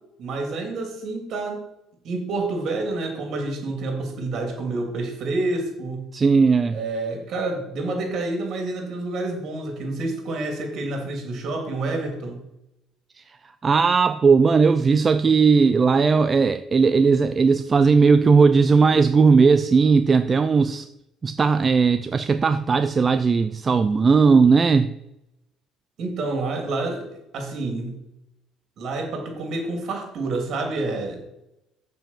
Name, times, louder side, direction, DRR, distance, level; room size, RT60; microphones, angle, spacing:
voice 1, 0.2-1.6 2.0-6.0 6.7-12.4 26.0-28.0 28.8-31.2, right 2 dB, 55° right, 3.1 m, -28 dB
voice 2, 6.1-6.8 13.6-20.8 21.2-24.9, right 5 dB, 25° right, 0.4 m, -17 dB
7.3 x 5.6 x 7.3 m
cardioid pair, 125°, 0 cm